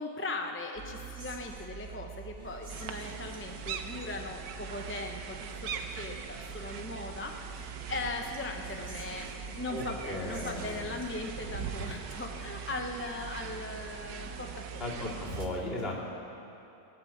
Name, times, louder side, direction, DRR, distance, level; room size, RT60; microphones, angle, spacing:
voice 1, 0.0-15.1, left 2 dB, 15° left, 2 dB, 0.5 m, -39 dB
sound 1, 0.8-15.5, right 6 dB, 45° right, 1.9 m, -45 dB
sound 2, 2.7-15.5, right 7 dB, 80° right, 1.3 m, -43 dB
voice 2, 9.7-10.9 14.8-16.0, left 1 dB, 40° left, -4 dB, 2.8 m, -36 dB
20.0 x 8.7 x 7.3 m, 2.9 s
omnidirectional pair, 1.6 m